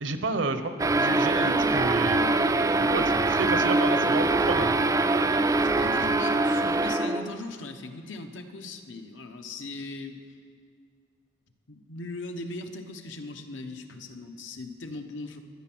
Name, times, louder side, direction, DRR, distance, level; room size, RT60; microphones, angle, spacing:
voice 1, 0.0-4.7, right 3 dB, 70° right, 9 dB, 0.9 m, -31 dB
sound 1, 0.8-7.4, right 2 dB, 15° right, 0.3 m, -23 dB
voice 2, 5.6-10.2 11.7-15.4, left 2 dB, 75° left, 6 dB, 1.0 m, -39 dB
12.5 x 10.0 x 6.1 m, 2.3 s
head